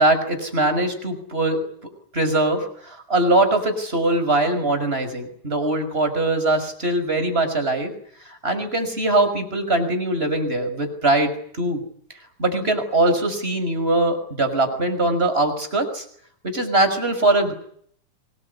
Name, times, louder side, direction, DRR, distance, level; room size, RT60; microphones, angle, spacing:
voice 1, 0.0-1.6 2.1-7.9 8.3-11.8 12.4-16.0 16.4-17.5, right 2 dB, 15° right, 7 dB, 6.0 m, -21 dB
26.0 x 20.5 x 9.7 m, 0.64 s
omnidirectional pair, 3.7 m